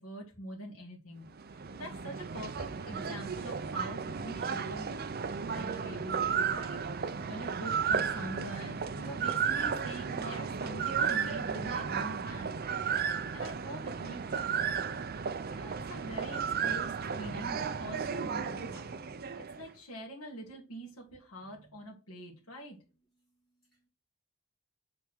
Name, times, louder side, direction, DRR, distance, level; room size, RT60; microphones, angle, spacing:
voice 1, 0.0-4.9 5.4-6.8 7.2-12.6 13.3-14.9 15.5-18.9 19.4-22.8, right 1 dB, 80° left, -2 dB, 2.1 m, -45 dB
sound 1, 1.3-19.7, right 6 dB, 45° right, 0.5 m, -34 dB
voice 2, 23.2-23.9, right 1 dB, ahead, -8 dB, 2.0 m, -77 dB
8.5 x 3.5 x 6.1 m, 0.34 s
head